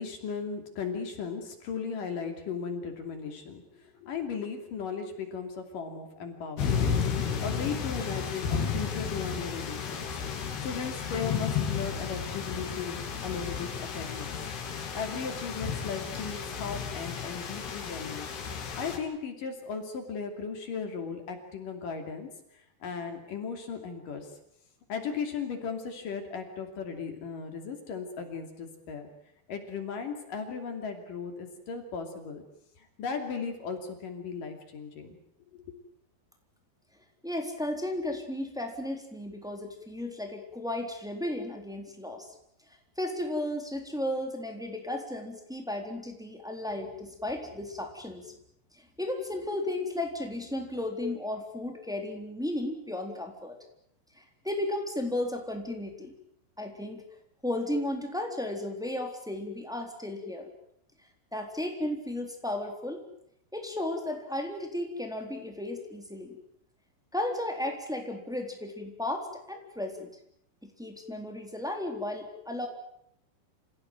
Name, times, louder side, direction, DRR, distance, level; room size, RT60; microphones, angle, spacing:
voice 1, 0.0-10.1 10.3-14.3 14.9-18.3 18.8-22.3 22.8-24.3 24.9-29.1 29.5-32.4 32.8-35.2 35.5-35.6, left 5 dB, 55° left, 5 dB, 4.1 m, -36 dB
sound 1, 6.6-19.0, left 6 dB, 75° left, 4.9 m, -33 dB
voice 2, 37.2-42.3 43.0-48.3 48.8-53.6 54.2-56.1 56.6-57.0 57.4-60.5 61.3-63.0 63.5-66.4 67.1-70.1 70.6-72.7, left 1 dB, ahead, 2 dB, 3.1 m, -34 dB
28.5 x 16.0 x 9.3 m, 0.74 s
omnidirectional pair, 4.8 m